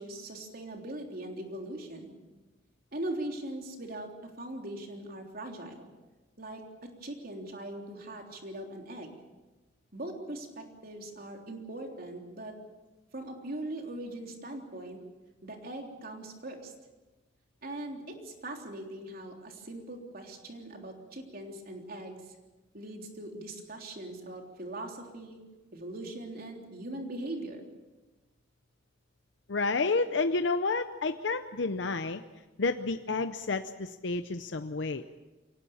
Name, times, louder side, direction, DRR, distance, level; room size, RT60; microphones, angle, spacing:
voice 1, 0.0-2.1 2.9-5.9 6.4-9.1 9.9-12.6 13.1-15.0 15.4-16.7 17.6-22.4 22.7-25.4 25.7-27.6, right 1 dB, 55° right, 2 dB, 3.5 m, -41 dB
voice 2, 29.5-32.2 32.6-35.0, left 3 dB, 70° left, 9 dB, 0.7 m, -30 dB
24.0 x 18.0 x 7.2 m, 1.2 s
head